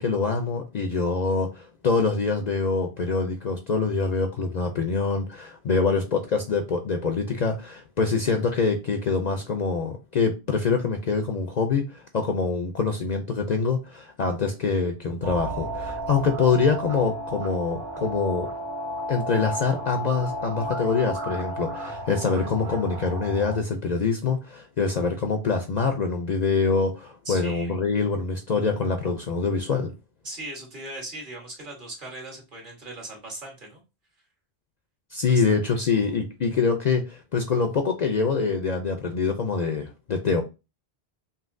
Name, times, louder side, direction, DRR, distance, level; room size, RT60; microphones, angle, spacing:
voice 1, 0.0-18.5 19.1-29.9 35.1-40.4, left 4 dB, 55° left, 5 dB, 0.5 m, -25 dB
sound 1, 15.2-23.6, equal, 80° right, 1.7 m, -33 dB
voice 2, 27.2-27.7 30.2-33.8 35.3-36.1, right 1 dB, 50° right, -1 dB, 1.5 m, -39 dB
5.5 x 2.8 x 2.6 m, 0.28 s
omnidirectional pair, 1.1 m